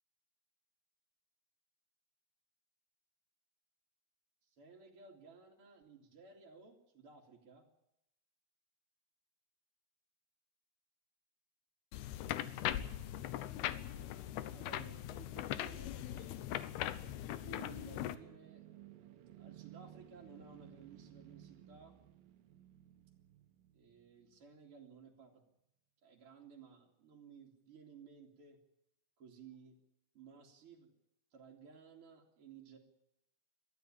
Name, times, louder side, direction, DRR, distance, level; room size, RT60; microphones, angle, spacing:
voice 1, 4.4-7.7 13.0-16.4 17.4-18.7 19.4-22.0 23.7-25.4 26.0-28.6 29.2-29.8 30.1-30.9 31.3-32.8, right 5 dB, 40° right, -1 dB, 3.1 m, -57 dB
sound 1, 11.9-18.1, left 12 dB, 85° left, 3.0 m, -40 dB
sound 2, 15.7-24.5, right 12 dB, 70° right, 2.9 m, -58 dB
22.0 x 14.0 x 9.9 m, 0.85 s
omnidirectional pair, 4.5 m